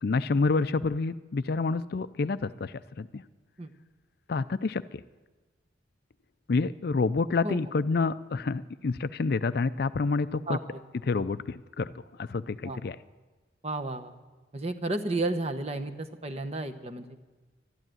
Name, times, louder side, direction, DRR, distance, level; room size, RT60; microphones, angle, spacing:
voice 1, 0.0-3.2 4.3-5.0 6.5-10.6 11.1-11.9 12.2-13.0, left 4 dB, 55° left, 14 dB, 0.4 m, -28 dB
voice 2, 13.6-14.1 14.5-17.2, right 2 dB, 35° right, 7 dB, 0.9 m, -32 dB
12.5 x 12.0 x 9.1 m, 1.3 s
head